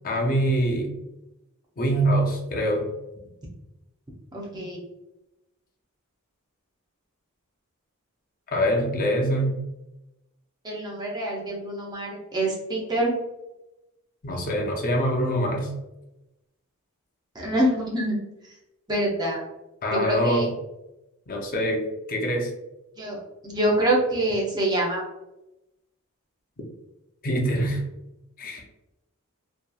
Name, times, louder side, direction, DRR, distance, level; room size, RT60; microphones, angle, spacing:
voice 1, 0.0-0.9 1.8-2.9 8.5-9.6 14.2-15.7 19.8-20.5 21.3-22.5 27.2-27.8 28.4-28.6, equal, 40° left, 1 dB, 0.5 m, -24 dB
voice 2, 4.3-4.8 10.6-13.1 17.3-18.2 18.9-19.4 19.9-20.5 23.0-25.0, right 1 dB, 20° right, -3 dB, 0.6 m, -25 dB
2.8 x 2.4 x 2.2 m, 0.95 s
head